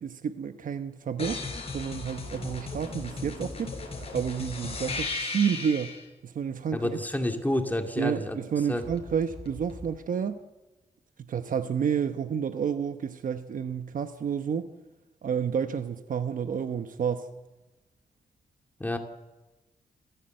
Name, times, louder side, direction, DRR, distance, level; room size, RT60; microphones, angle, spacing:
voice 1, 0.0-1.4 1.7-5.9 6.2-7.0 8.0-10.4 11.2-14.7 15.2-17.3, right 7 dB, 70° right, 1.0 m, -30 dB
sound 1, 1.2-6.0 8.8-9.9, left 3 dB, 45° left, 5.6 m, -36 dB
voice 2, 6.7-8.4 8.7-8.8 18.8-19.0, left 1 dB, 10° left, 2.3 m, -29 dB
28.5 x 15.0 x 7.8 m
cardioid pair, 100°, 14 cm